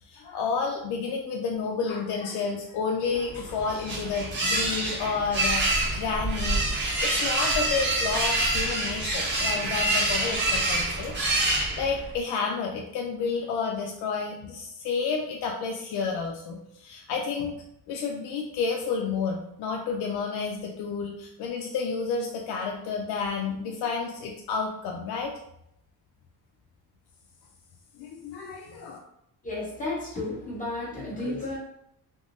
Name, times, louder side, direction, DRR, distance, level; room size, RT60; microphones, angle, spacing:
voice 1, 0.1-11.1 11.8-17.6 17.9-25.3 28.0-29.0, left 5 dB, 75° left, 0 dB, 0.5 m, -30 dB
sound 1, 3.3-12.2, right 2 dB, 30° right, 0.7 m, -26 dB
voice 2, 29.4-31.6, left 2 dB, 20° left, -6 dB, 1.0 m, -32 dB
3.5 x 2.0 x 2.5 m, 0.76 s
cardioid pair, 155°, 39 cm